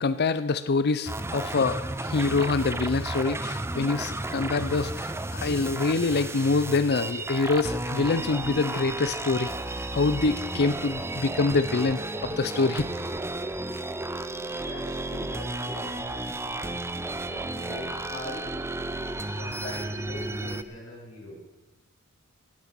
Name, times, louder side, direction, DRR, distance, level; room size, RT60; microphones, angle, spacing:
voice 1, 0.0-9.5 9.9-12.9, left 3 dB, 50° left, 14 dB, 0.5 m, -25 dB
sound 1, 1.1-20.6, right 2 dB, 10° right, 0.6 m, -33 dB
voice 2, 14.4-18.4 19.2-21.4, left 1 dB, 65° left, -4 dB, 7.1 m, -41 dB
18.0 x 11.0 x 5.8 m, 1.1 s
head